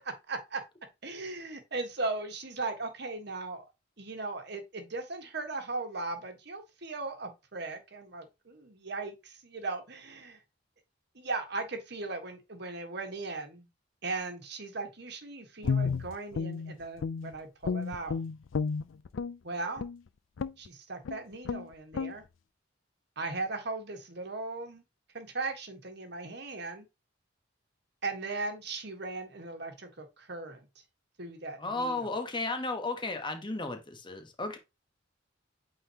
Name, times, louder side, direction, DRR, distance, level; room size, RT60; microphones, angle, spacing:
voice 1, 0.3-0.6 1.0-3.6 4.0-10.4 11.1-13.7 14.0-18.2 19.4-19.8 20.6-22.2 23.2-24.8 25.1-26.9 28.0-30.7 31.2-32.1, right 3 dB, 55° right, 1.4 m, -38 dB
Guitar, 15.6-17.4 17.6-19.4 19.8-20.0 20.4-20.7 21.0-21.2 21.4-21.7 21.9-22.1, left 5 dB, 85° left, 0.4 m, -32 dB
voice 2, 31.6-34.6, left 2 dB, 25° left, 1.2 m, -34 dB
8.6 x 3.9 x 2.9 m
head